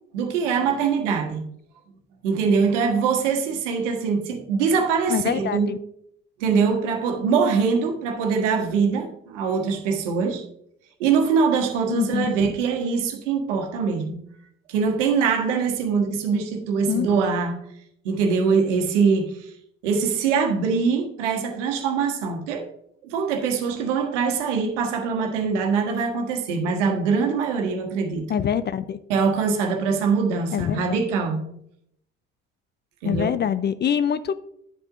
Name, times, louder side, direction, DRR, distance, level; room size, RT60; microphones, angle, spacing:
voice 1, 0.1-1.4 2.2-5.7 6.4-10.4 11.0-14.2 14.7-17.6 18.0-19.5 19.8-22.7 23.0-28.4 29.1-31.4 33.0-33.3, right 5 dB, 70° right, 1.5 m, -23 dB
voice 2, 5.1-5.8 11.9-12.3 16.9-17.1 28.3-29.0 30.5-30.9 33.0-34.3, left 8 dB, 30° left, 0.5 m, -24 dB
10.0 x 8.0 x 2.6 m
figure-of-eight pair, 55°, 37 cm